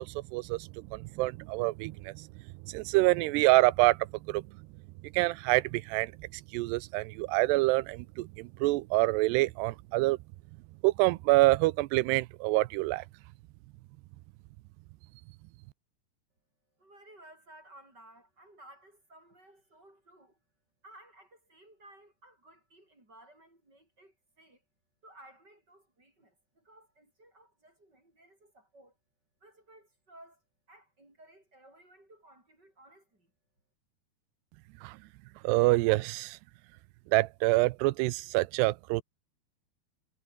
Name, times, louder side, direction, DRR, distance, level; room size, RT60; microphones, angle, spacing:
voice 1, 0.0-2.3 2.7-4.0 4.3-4.4 5.1-6.1 6.5-10.2 10.8-13.0 34.8-34.9 35.4-36.4 37.1-39.0, right 20 dB, 85° right, 2.8 m, -26 dB
voice 2, 16.8-20.4 20.8-24.6 25.0-29.0 29.4-30.4 30.7-33.3, right 1 dB, 25° right, 7.8 m, -57 dB
omnidirectional pair, 4.7 m